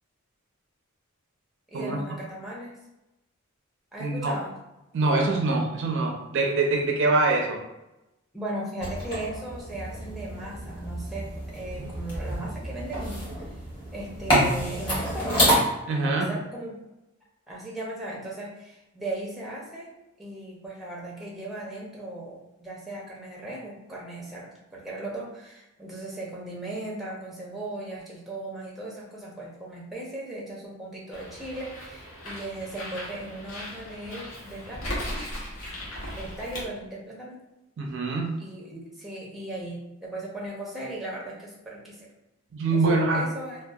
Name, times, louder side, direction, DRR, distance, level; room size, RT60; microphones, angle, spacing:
voice 1, 1.7-2.8 3.9-4.6 8.3-13.3 13.9-15.3 16.0-16.8 17.5-19.9 20.2-35.0 36.1-37.4 38.4-42.1 42.7-43.6, right 1 dB, ahead, -4 dB, 0.5 m, -37 dB
voice 2, 4.0-4.3 4.9-7.6 15.9-16.3 37.8-38.3 42.5-43.2, right 3 dB, 60° right, 2 dB, 0.4 m, -24 dB
sound 1, 8.8-15.6, equal, 20° left, 1.0 m, -28 dB
Bird, 31.1-36.7, left 1 dB, 70° left, 0.7 m, -37 dB
2.7 x 2.2 x 2.3 m, 0.95 s
head